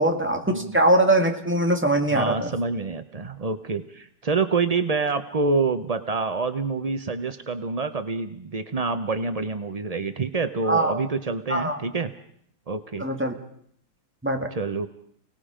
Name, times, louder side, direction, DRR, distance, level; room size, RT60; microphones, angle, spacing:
voice 1, 0.0-2.5 10.6-11.0 11.5-11.8 13.0-13.4 14.2-14.5, right 1 dB, 5° right, 3 dB, 1.8 m, -22 dB
voice 2, 2.1-12.1 12.7-13.0 14.5-14.9, right 4 dB, 70° right, 9 dB, 0.3 m, -27 dB
29.5 x 18.5 x 5.1 m, 0.67 s
omnidirectional pair, 2.1 m